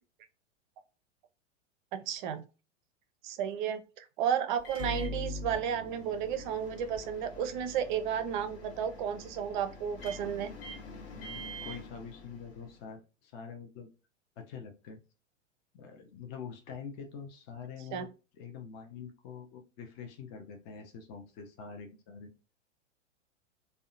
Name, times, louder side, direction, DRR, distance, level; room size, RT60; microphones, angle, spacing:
voice 1, 1.9-2.5 3.2-10.5 17.9-18.1, right 8 dB, 40° right, 9 dB, 0.5 m, -33 dB
Microwave oven, 4.6-12.8, left 1 dB, 50° left, 0.9 m, -43 dB
voice 2, 11.1-13.9 14.4-15.0 15.7-18.1 18.4-22.3, left 6 dB, 30° left, 3 dB, 0.5 m, -45 dB
2.6 x 2.1 x 2.5 m, 0.31 s
figure-of-eight pair, 95°, 37 cm